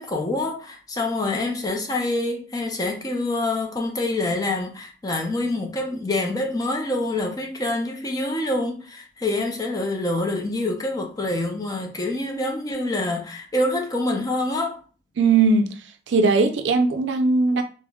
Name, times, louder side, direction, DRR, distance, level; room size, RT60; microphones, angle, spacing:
voice 1, 0.0-14.8, left 2 dB, 20° left, 0.4 m, -26 dB
voice 2, 15.2-15.7 16.1-17.6, right 3 dB, 80° right, 0.4 m, -19 dB
3.5 x 2.0 x 2.3 m
head